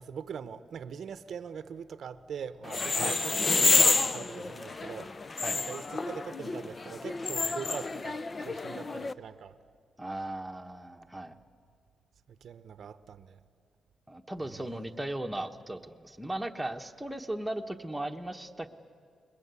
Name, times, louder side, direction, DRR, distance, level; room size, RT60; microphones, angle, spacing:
voice 1, 0.0-5.1 5.5-9.6 12.4-13.4 14.4-14.7, right 7 dB, 65° right, 12 dB, 0.8 m, -42 dB
sound 1, 2.6-9.1, left 3 dB, 30° left, 0.7 m, -29 dB
voice 2, 10.0-11.4 14.1-18.7, right 1 dB, 5° right, 3 dB, 1.2 m, -37 dB
29.5 x 21.0 x 8.3 m, 2.1 s
cardioid pair, 105°, 0 cm